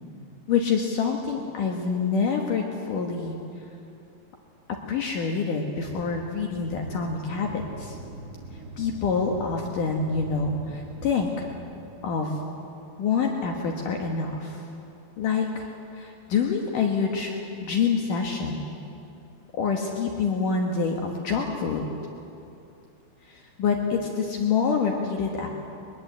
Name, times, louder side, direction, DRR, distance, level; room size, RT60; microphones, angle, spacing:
voice 1, 0.5-3.4 4.9-8.0 8.8-11.5 12.0-12.4 13.0-14.6 15.2-15.7 15.9-18.6 19.6-21.8 23.2-25.5, left 5 dB, 65° left, 1 dB, 2.8 m, -26 dB
sound 1, 5.8-11.7, right 2 dB, 35° right, 1.6 m, -42 dB
22.0 x 22.0 x 8.0 m, 2.7 s
omnidirectional pair, 4.4 m